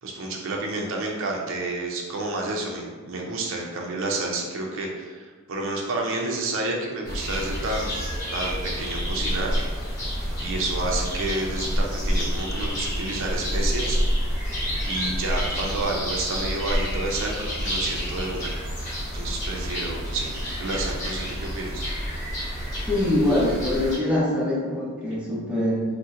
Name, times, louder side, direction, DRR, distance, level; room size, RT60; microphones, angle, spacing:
voice 1, 0.0-7.9 8.3-9.6 9.9-10.1 10.4-14.5 14.8-18.5 19.1-20.3 20.6-22.2, right 2 dB, 65° right, -1 dB, 0.5 m, -30 dB
sound 1, 7.0-24.0, equal, 35° left, 1.1 m, -28 dB
voice 2, 22.9-25.8, left 1 dB, 5° right, -7 dB, 0.7 m, -23 dB
2.8 x 2.1 x 3.6 m, 1.4 s
head